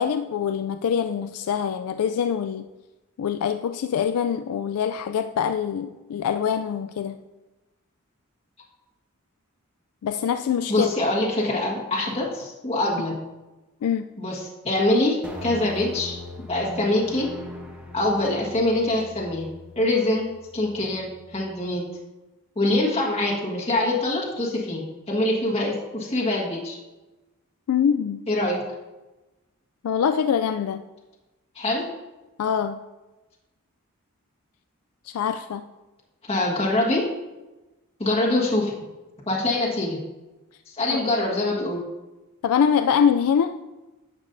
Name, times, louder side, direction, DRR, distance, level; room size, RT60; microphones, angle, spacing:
voice 1, 0.0-2.7 3.2-7.2 10.0-10.9 13.8-14.1 27.7-28.2 29.8-30.8 32.4-32.8 35.1-35.7 40.9-41.0 42.4-43.5, left 7 dB, 85° left, 9 dB, 0.3 m, -24 dB
voice 2, 10.7-13.1 14.2-16.2 16.5-17.3 17.9-19.5 19.7-20.3 20.5-21.8 22.5-26.8 28.3-28.6 31.5-31.9 36.2-37.1 38.0-38.7 39.3-40.0 40.8-41.8, left 1 dB, 30° left, -4 dB, 1.5 m, -24 dB
sound 1, 15.2-21.7, left 1 dB, 5° right, 1.1 m, -40 dB
10.5 x 7.3 x 2.6 m, 1.1 s
head